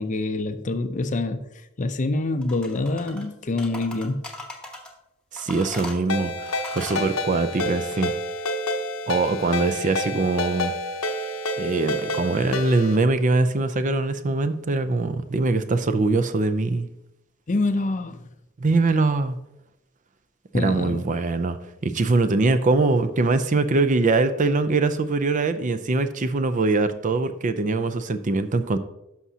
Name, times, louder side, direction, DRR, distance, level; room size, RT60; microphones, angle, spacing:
voice 1, 0.0-1.4 1.8-4.2 17.5-18.2 20.5-21.0, left 2 dB, 35° left, 0.5 m, -26 dB
sound 1, 2.4-3.3 3.6-4.9 5.4-7.1, left 1 dB, 5° left, 1.0 m, -38 dB
voice 2, 5.3-8.1 9.1-10.7 11.6-16.9 18.6-19.4 20.5-21.6 21.8-28.8, right 3 dB, 35° right, 0.5 m, -22 dB
Ringtone, 6.1-13.0, left 1 dB, 80° left, 0.8 m, -29 dB
11.5 x 6.1 x 2.8 m
head